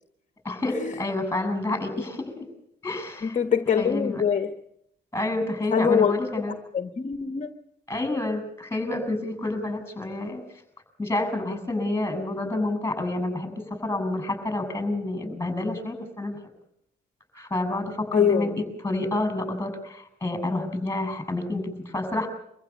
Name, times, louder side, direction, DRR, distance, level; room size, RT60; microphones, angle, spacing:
voice 1, 0.4-2.5 2.8-3.4 3.8-4.2 5.1-6.5 7.9-10.4 11.0-16.4 17.3-22.3, left 2 dB, 10° left, 9 dB, 7.0 m, -29 dB
voice 2, 3.2-4.5 5.7-6.2 6.7-7.5 18.1-18.6, left 7 dB, 40° left, 8 dB, 1.5 m, -24 dB
25.0 x 15.0 x 8.5 m, 0.74 s
cardioid pair, 90°, 20 cm